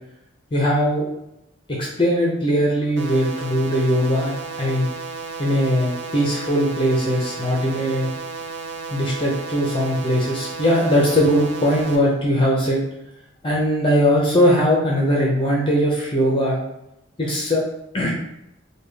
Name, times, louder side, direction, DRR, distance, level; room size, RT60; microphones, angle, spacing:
voice 1, 0.5-1.1 1.7-4.9 5.4-8.1 8.9-12.8 13.4-16.6 17.2-17.6 17.9-18.1, equal, 25° left, -3 dB, 0.5 m, -20 dB
sound 1, 3.0-12.0, right 4 dB, 60° right, 0.5 m, -33 dB
3.4 x 2.2 x 3.3 m, 0.82 s
head